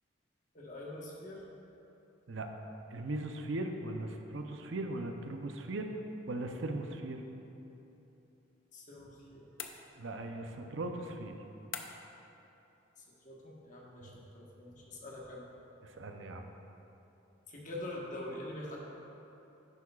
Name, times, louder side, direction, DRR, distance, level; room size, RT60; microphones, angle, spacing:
voice 1, 0.5-1.4 8.7-9.5 13.0-15.4 17.5-18.8, left 1 dB, 40° left, -3 dB, 1.3 m, -45 dB
voice 2, 2.9-5.9 6.3-7.3 10.0-11.4 14.0-14.2 15.8-16.5, right 2 dB, 75° right, 4 dB, 0.6 m, -39 dB
sound 1, 9.6-10.3 11.7-12.2, left 7 dB, 75° left, 0.6 m, -44 dB
11.0 x 8.4 x 2.4 m, 3.0 s
head